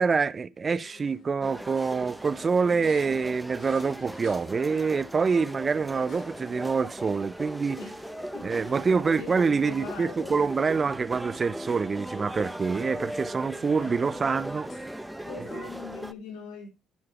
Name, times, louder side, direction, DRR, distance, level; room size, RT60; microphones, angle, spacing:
voice 1, 0.0-7.8 8.4-15.0 15.5-15.7, right 5 dB, 40° right, 0.7 m, -26 dB
sound 1, 0.7-15.9, left 5 dB, 60° left, 4.1 m, -53 dB
sound 2, 1.4-16.1, right 1 dB, 5° right, 1.0 m, -38 dB
voice 2, 8.3-10.7 15.2-16.7, left 6 dB, 80° left, 4.8 m, -42 dB
11.5 x 9.5 x 3.1 m
hypercardioid pair, 50°, 0 cm